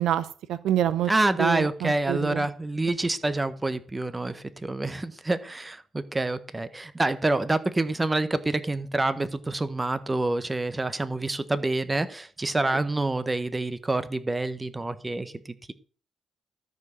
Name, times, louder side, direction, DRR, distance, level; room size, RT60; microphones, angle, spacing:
voice 1, 0.0-1.1 1.4-2.5, right 11 dB, 80° right, 15 dB, 0.7 m, -27 dB
voice 2, 1.1-15.7, right 2 dB, 15° right, 13 dB, 0.9 m, -27 dB
13.0 x 4.8 x 6.3 m, 0.42 s
cardioid pair, 90°, 0 cm